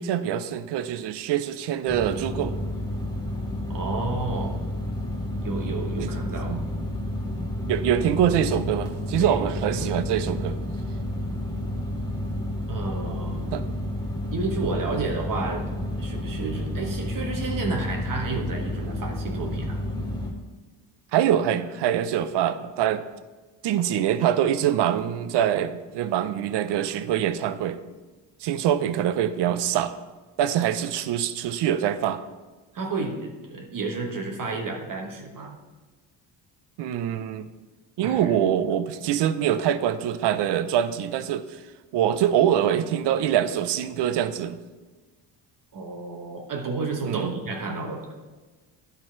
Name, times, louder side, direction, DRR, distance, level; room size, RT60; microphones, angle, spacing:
voice 1, 0.0-2.5 6.0-6.1 6.5-6.6 7.7-10.6 13.5-13.6 21.1-23.0 23.6-27.8 28.4-29.9 30.4-32.2 36.8-37.5 38.0-41.6 41.9-44.6 47.0-47.3, right 10 dB, 65° right, 13 dB, 0.6 m, -24 dB
sound 1, 1.9-20.3, left 1 dB, 10° left, 1.6 m, -30 dB
voice 2, 3.7-4.6 5.4-6.7 9.2-10.1 12.7-13.5 14.3-15.7 16.0-19.8 32.7-35.6 38.0-38.4 45.7-48.1, right 3 dB, 45° right, 1 dB, 1.2 m, -31 dB
10.5 x 4.0 x 4.5 m, 1.3 s
cardioid pair, 80°, 45 cm